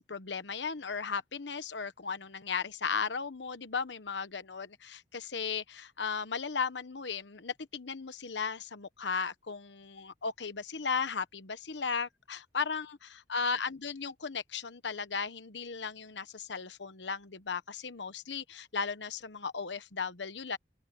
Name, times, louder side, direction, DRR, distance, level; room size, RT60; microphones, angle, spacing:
voice 1, 0.1-20.6, left 5 dB, 80° left, 1.1 m, -36 dB
open air
head